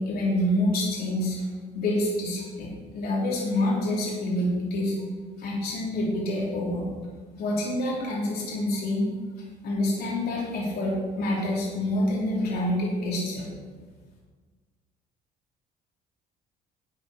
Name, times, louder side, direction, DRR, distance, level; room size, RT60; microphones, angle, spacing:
voice 1, 0.0-1.4 1.7-4.9 5.4-6.8 7.4-9.1 9.6-13.5, left 1 dB, 65° left, -4 dB, 3.4 m, -27 dB
11.5 x 9.2 x 4.4 m, 1.5 s
cardioid pair, 110°, 17 cm